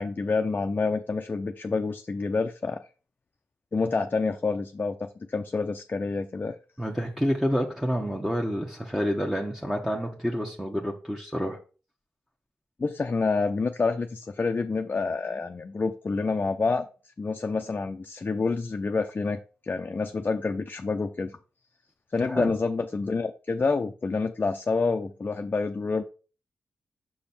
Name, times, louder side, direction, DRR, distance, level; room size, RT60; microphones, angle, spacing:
voice 1, 0.0-2.8 3.7-6.6 12.8-16.9 17.2-19.4 19.7-21.3 22.1-26.0, left 4 dB, 40° left, 0.6 m, -28 dB
voice 2, 6.8-11.6 22.3-22.5, equal, 5° right, 1.2 m, -28 dB
5.6 x 5.2 x 4.4 m
supercardioid pair, 50°, 5 cm